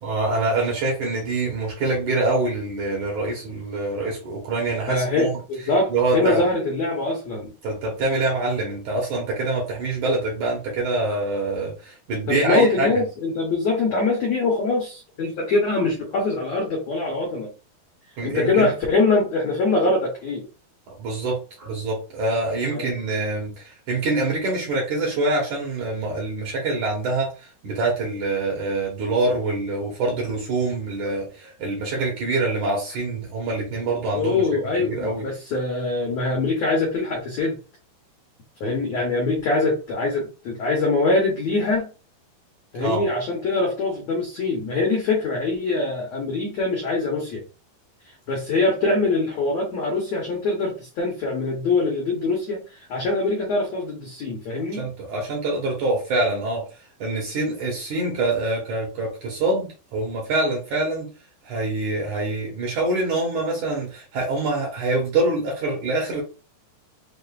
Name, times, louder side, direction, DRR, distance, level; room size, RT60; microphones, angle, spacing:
voice 1, 0.0-5.4 5.9-6.4 7.6-12.9 18.2-18.7 20.9-34.4 34.9-35.2 42.8-43.0 54.7-56.6 57.0-61.1 61.4-66.2, right 2 dB, 65° right, 2.1 m, -25 dB
voice 2, 4.9-7.5 12.3-17.5 18.2-20.5 22.7-22.9 34.1-37.6 38.6-41.9 42.7-47.4 48.3-54.9, left 3 dB, 75° left, 1.6 m, -23 dB
6.8 x 2.5 x 2.4 m
omnidirectional pair, 4.6 m